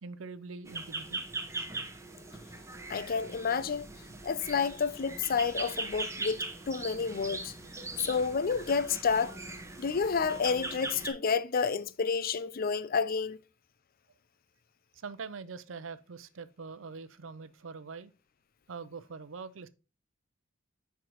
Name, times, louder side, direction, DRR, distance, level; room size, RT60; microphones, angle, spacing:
voice 1, 0.0-1.3 4.6-4.7 14.9-18.1 18.7-19.7, right 4 dB, 90° right, 0.6 m, -43 dB
sound 1, 0.7-11.1, right 3 dB, 15° right, 1.2 m, -40 dB
voice 2, 2.9-3.9 4.2-7.5 8.0-9.3 9.8-13.4, left 5 dB, 50° left, 0.5 m, -30 dB
10.0 x 4.7 x 3.0 m
head